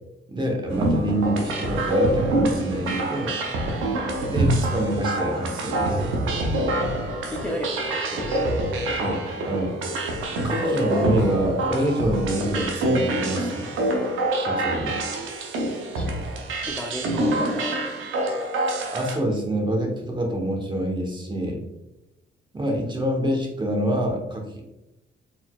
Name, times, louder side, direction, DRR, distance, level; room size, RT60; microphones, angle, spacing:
voice 1, 0.3-3.4 4.3-6.1 8.9-9.8 10.4-13.7 14.5-15.0 18.9-21.6 22.5-24.6, equal, 25° right, 1 dB, 1.0 m, -26 dB
sound 1, 0.7-19.2, right 1 dB, 85° right, 0.8 m, -26 dB
voice 2, 7.2-8.6 15.9-16.2 16.7-18.7, equal, 5° left, -3 dB, 0.6 m, -34 dB
4.2 x 4.0 x 2.3 m, 0.96 s
cardioid pair, 90°, 20 cm